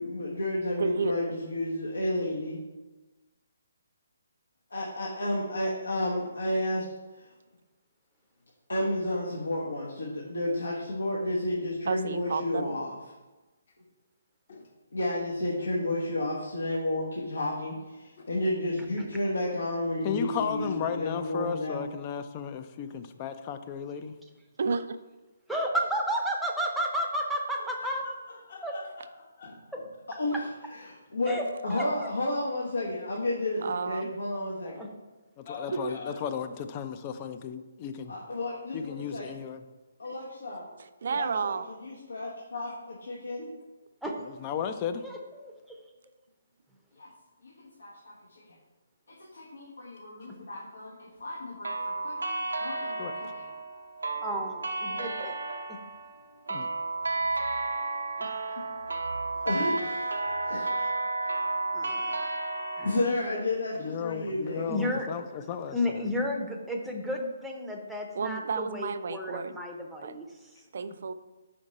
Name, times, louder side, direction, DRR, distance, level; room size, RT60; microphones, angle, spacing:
voice 1, 0.0-2.6 4.7-6.9 7.1-7.3 8.7-12.9 14.9-21.8 30.2-31.4 31.6-34.8 38.1-39.2 40.0-40.7 41.1-41.5 41.8-43.5 47.0-47.1 47.4-48.4 49.2-53.4 58.5-58.6 59.4-60.1 60.5-60.9 62.8-64.6, left 1 dB, 80° left, -4 dB, 1.2 m, -32 dB
voice 2, 0.8-1.1 11.9-12.7 24.6-25.0 33.6-34.1 35.7-35.9 40.7-41.7 68.1-69.6 70.0-70.2 70.7-71.1, right 5 dB, 60° right, 11 dB, 0.4 m, -31 dB
voice 3, 20.0-24.1 35.4-38.1 38.7-39.6 44.2-45.0 53.0-53.1 56.5-56.7 63.8-66.1, left 8 dB, 30° left, 9 dB, 0.4 m, -34 dB
voice 4, 25.5-28.0 28.6-28.7 30.3-30.4 31.3-31.4 31.7-31.9 34.6-34.9 44.0-44.1 45.0-45.8 54.2-55.3 55.7-55.8 56.5-56.6 61.7-62.3 62.8-63.0 64.6-65.1 65.7-70.5, equal, ahead, -1 dB, 0.7 m, -32 dB
voice 5, 27.6-29.9 35.4-36.2 42.7-42.8, left 3 dB, 55° left, 0 dB, 1.2 m, -45 dB
sound 1, 51.6-63.0, right 3 dB, 85° right, 0.8 m, -32 dB
5.1 x 5.1 x 4.1 m, 1.2 s
figure-of-eight pair, 140°, 0 cm